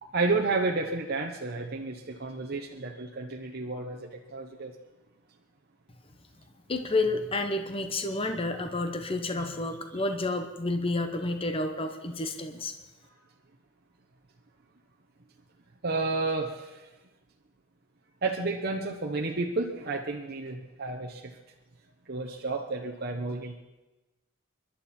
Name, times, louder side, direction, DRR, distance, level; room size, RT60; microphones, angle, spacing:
voice 1, 0.0-4.7 15.8-16.9 18.2-21.4 22.1-23.6, right 3 dB, 50° right, 1 dB, 1.0 m, -31 dB
voice 2, 6.7-12.7, left 2 dB, 25° left, 7 dB, 1.0 m, -30 dB
26.0 x 11.5 x 4.4 m, 1.1 s
head